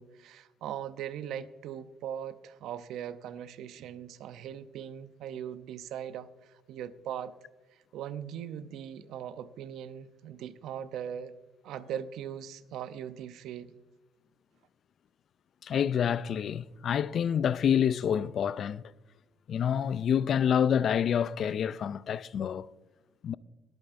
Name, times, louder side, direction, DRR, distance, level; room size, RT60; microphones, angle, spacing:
voice 1, 0.0-7.4 7.7-11.4 11.6-13.8, right 9 dB, 75° right, 0.6 m, -40 dB
voice 2, 15.6-18.8 19.5-22.7 23.2-23.3, left 8 dB, 50° left, 0.3 m, -27 dB
22.5 x 8.7 x 2.6 m
cardioid pair, 125°, 0 cm